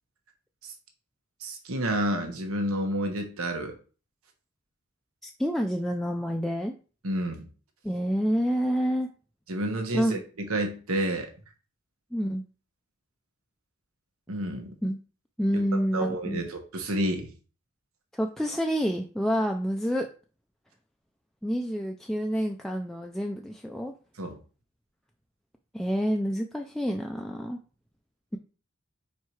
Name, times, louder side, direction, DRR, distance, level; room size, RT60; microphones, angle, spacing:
voice 1, 1.4-3.8 7.0-7.5 9.5-11.3 14.3-14.7 15.9-17.3 24.2-24.4, right 1 dB, 85° right, 4 dB, 1.3 m, -30 dB
voice 2, 5.2-6.7 7.8-9.1 9.9-10.2 12.1-12.4 14.8-15.0 15.4-16.4 18.1-20.1 21.4-23.9 25.7-27.6, equal, ahead, 2 dB, 0.4 m, -28 dB
4.6 x 4.4 x 4.7 m, 0.37 s
head